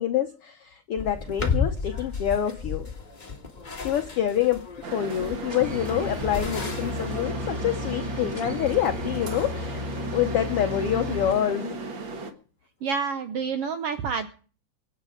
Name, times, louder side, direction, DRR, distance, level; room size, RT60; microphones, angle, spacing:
voice 1, 0.0-2.9 3.8-4.6 4.9-9.9 10.1-11.8, left 10 dB, 75° left, 7 dB, 1.3 m, -26 dB
sound 1, 1.0-7.2, left 5 dB, 30° left, 0.9 m, -33 dB
sound 2, 4.8-12.3, right 3 dB, 45° right, 1.9 m, -35 dB
sound 3, 5.5-11.3, left 3 dB, 10° right, 1.7 m, -34 dB
voice 2, 12.8-14.3, right 6 dB, 75° right, 9 dB, 1.4 m, -28 dB
24.0 x 8.6 x 5.0 m, 0.41 s
omnidirectional pair, 3.6 m